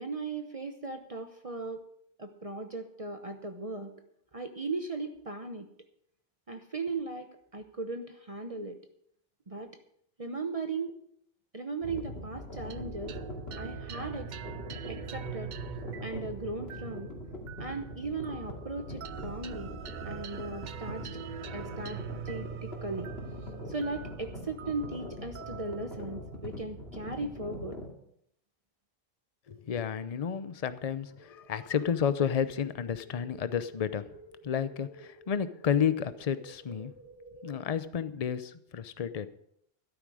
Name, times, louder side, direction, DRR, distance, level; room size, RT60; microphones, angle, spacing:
voice 1, 0.0-1.9 2.2-3.9 4.3-5.7 6.5-8.8 9.5-9.8 10.2-11.0 11.5-13.2 13.6-14.3 14.9-15.5 16.0-17.1 17.6-19.7 20.0-21.2 21.5-23.1 23.7-27.8, right 3 dB, 35° right, 6 dB, 0.9 m, -37 dB
sound 1, 11.8-27.9, left 1 dB, 80° left, 2.8 m, -42 dB
sound 2, 12.7-27.4, right 9 dB, 55° right, 0.6 m, -44 dB
voice 2, 29.5-34.1 34.4-36.9 37.4-39.3, left 8 dB, 40° left, 13 dB, 0.7 m, -31 dB
sound 3, 31.2-37.6, right 1 dB, 10° right, 3.6 m, -52 dB
13.0 x 11.5 x 4.9 m, 0.72 s
omnidirectional pair, 1.1 m